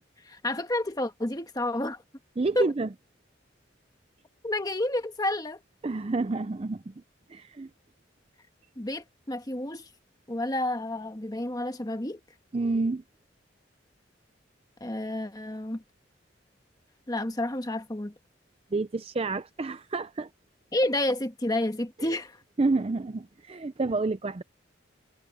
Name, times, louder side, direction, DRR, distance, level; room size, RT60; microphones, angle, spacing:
voice 1, 0.2-2.0 2.5-2.7 4.4-5.6 8.8-9.9 10.3-12.2 14.8-15.8 17.1-18.1 20.7-22.4, left 1 dB, 20° left, 1.4 m, -30 dB
voice 2, 2.4-2.9 5.8-6.9 7.3-7.7 12.5-13.0 18.7-20.3 22.0-22.1 22.6-24.4, right 3 dB, 30° right, 0.5 m, -29 dB
head